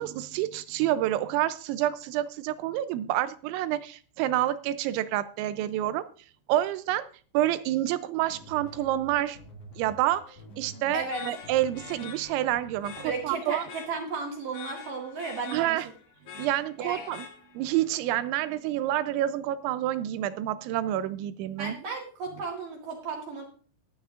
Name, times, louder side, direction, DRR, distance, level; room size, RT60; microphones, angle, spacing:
voice 1, 0.0-6.1 6.5-7.1 7.3-9.4 9.8-10.2 10.6-13.6 15.5-15.9 16.4-17.3 17.5-21.8, right 13 dB, 80° right, 2.8 m, -28 dB
sound 1, 8.1-13.3, equal, 65° left, 1.5 m, -49 dB
voice 2, 10.9-11.3 13.0-15.8 16.3-16.5 16.8-17.0 21.6-23.4, right 4 dB, 55° right, 3.0 m, -34 dB
sound 2, 11.1-17.8, left 8 dB, 80° left, 1.7 m, -46 dB
20.0 x 8.9 x 2.5 m
omnidirectional pair, 5.5 m